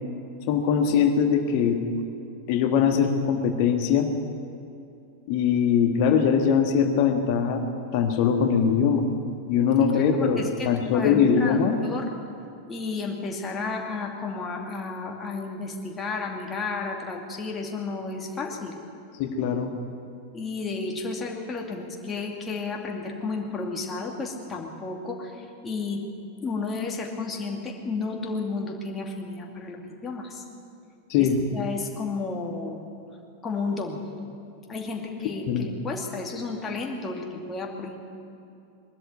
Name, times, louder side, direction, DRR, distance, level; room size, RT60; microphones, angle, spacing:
voice 1, 0.5-1.8 2.5-4.1 5.3-7.6 7.9-9.1 9.5-11.8 19.2-19.7 31.1-31.4 35.5-35.6, left 7 dB, 45° left, 5 dB, 1.6 m, -22 dB
voice 2, 9.9-12.1 12.7-18.8 20.3-26.0 26.4-30.4 31.2-32.8 33.4-34.0 34.7-38.0, left 4 dB, 20° left, 1 dB, 2.6 m, -32 dB
21.0 x 13.0 x 9.5 m, 2.6 s
figure-of-eight pair, 90°, 0 cm